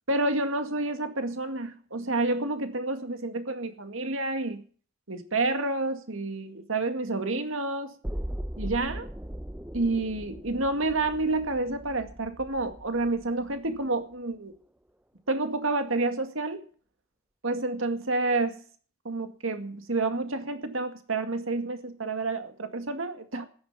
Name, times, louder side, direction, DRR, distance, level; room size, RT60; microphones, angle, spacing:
voice 1, 0.1-4.6 5.1-7.9 8.6-9.1 9.7-14.5 15.3-16.6 17.4-18.6 19.0-23.5, right 2 dB, 70° right, 8 dB, 2.1 m, -29 dB
sound 1, 8.0-14.0 14.3-14.4, equal, 5° right, 0.6 m, -39 dB
14.0 x 10.5 x 6.9 m, 0.43 s
head